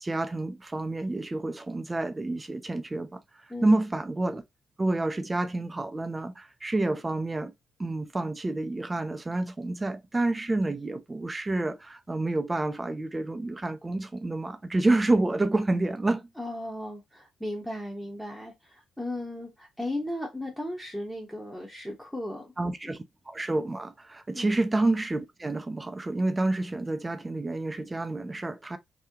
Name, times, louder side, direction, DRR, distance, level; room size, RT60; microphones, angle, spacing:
voice 1, 0.0-3.2 3.6-4.4 4.8-7.5 7.8-16.3 22.6-28.8, right 2 dB, 20° right, 0.5 m, -28 dB
voice 2, 3.5-3.8 16.4-22.5 22.8-22.9 24.3-24.6, left 1 dB, ahead, 0.9 m, -36 dB
2.8 x 2.1 x 3.5 m
cardioid pair, 90°, 0 cm